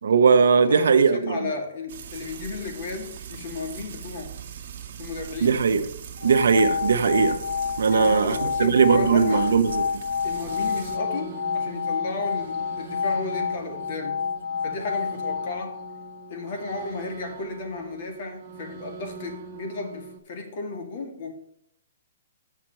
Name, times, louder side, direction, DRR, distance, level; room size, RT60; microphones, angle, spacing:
voice 1, 0.0-1.4 5.4-5.8 6.2-7.4 7.8-10.0, right 5 dB, 85° right, 1.0 m, -19 dB
voice 2, 0.5-4.3 5.0-5.6 7.9-9.5 10.2-14.2 14.6-15.8 16.3-21.3, left 3 dB, 50° left, 2.2 m, -34 dB
Frying (food), 1.9-11.0, right 8 dB, 50° right, 1.3 m, -40 dB
sound 1, 6.2-16.3, left 6 dB, 75° left, 0.3 m, -29 dB
sound 2, 10.2-20.2, right 5 dB, 30° right, 1.2 m, -42 dB
7.4 x 5.9 x 7.7 m
hypercardioid pair, 165°, 0 cm